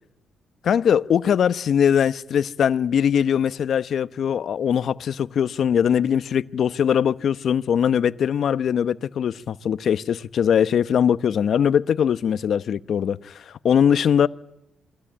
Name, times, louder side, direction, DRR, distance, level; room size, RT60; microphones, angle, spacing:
voice 1, 0.6-14.3, left 8 dB, 60° left, 1.0 m, -21 dB
27.5 x 21.0 x 8.9 m
cardioid pair, 90°, 0 cm